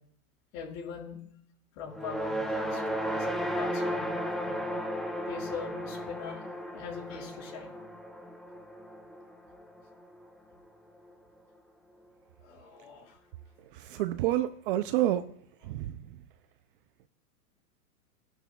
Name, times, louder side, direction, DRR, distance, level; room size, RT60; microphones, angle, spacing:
voice 1, 0.5-1.2 1.8-4.6 5.3-7.8 12.4-13.2 13.9-14.1 15.6-15.7, left 6 dB, 50° left, 0 dB, 5.6 m, -42 dB
sound 1, 1.9-10.3, equal, ahead, 0.8 m, -35 dB
voice 2, 13.9-15.2 15.7-15.9, right 13 dB, 35° right, 12 dB, 0.4 m, -28 dB
22.0 x 11.0 x 2.3 m, 0.68 s
hypercardioid pair, 130°, 47 cm